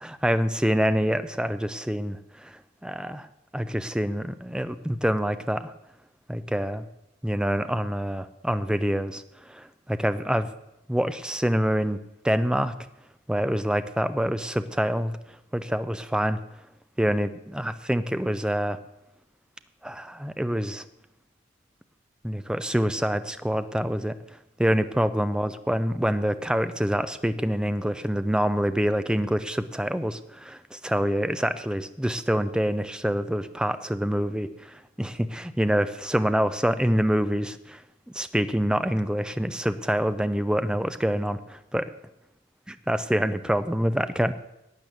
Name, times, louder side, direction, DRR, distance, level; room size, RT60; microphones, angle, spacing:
voice 1, 0.0-2.5 2.8-3.3 3.5-5.7 6.3-6.8 7.2-9.2 9.5-10.5 10.9-12.7 13.3-15.1 15.5-16.4 17.0-18.8 19.8-20.8 22.2-24.1 24.6-37.8 38.1-41.9 42.9-44.3, equal, 5° right, 11 dB, 0.5 m, -26 dB
12.5 x 8.7 x 7.8 m, 0.87 s
head